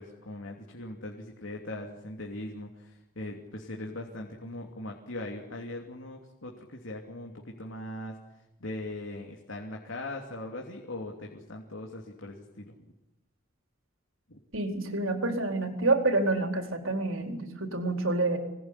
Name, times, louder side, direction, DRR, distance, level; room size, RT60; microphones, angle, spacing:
voice 1, 0.0-8.1 8.6-12.7 14.3-14.4, left 1 dB, 65° left, 0 dB, 3.0 m, -40 dB
voice 2, 14.5-18.4, right 2 dB, 70° right, 4 dB, 4.2 m, -28 dB
26.5 x 20.0 x 9.9 m, 0.90 s
head